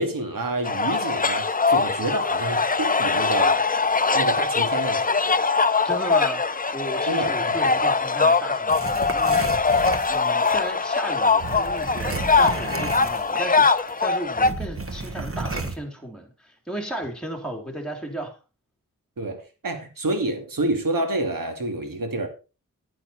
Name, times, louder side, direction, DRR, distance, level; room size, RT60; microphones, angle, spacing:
voice 1, 0.0-3.6 4.1-5.2 7.1-7.9 19.2-22.3, right 2 dB, 80° right, 5 dB, 2.5 m, -28 dB
sound 1, 0.6-14.5, left 4 dB, 25° left, 0.6 m, -22 dB
voice 2, 5.8-18.4, right 1 dB, ahead, 1 dB, 3.2 m, -35 dB
sound 2, 8.7-10.6 11.4-13.5 13.8-13.9 14.4-15.8, right 3 dB, 40° right, 1.6 m, -32 dB
9.9 x 9.8 x 4.3 m, 0.32 s
wide cardioid pair, 80°, 33 cm